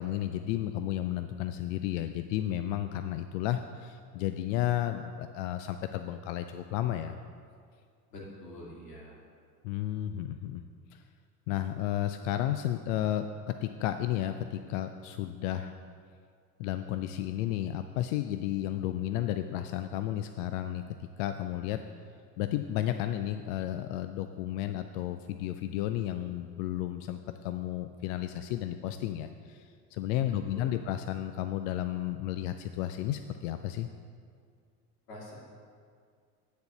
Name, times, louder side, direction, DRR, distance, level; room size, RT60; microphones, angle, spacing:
voice 1, 0.0-7.2 9.6-10.6 10.9-11.0 11.5-15.8 16.6-21.9 22.4-33.9, left 12 dB, 55° left, 9 dB, 0.5 m, -33 dB
voice 2, 8.1-9.2 30.5-30.8 35.1-35.3, left 1 dB, 75° left, -4 dB, 2.6 m, -46 dB
9.3 x 4.6 x 6.7 m, 2.2 s
hypercardioid pair, 75°, 47 cm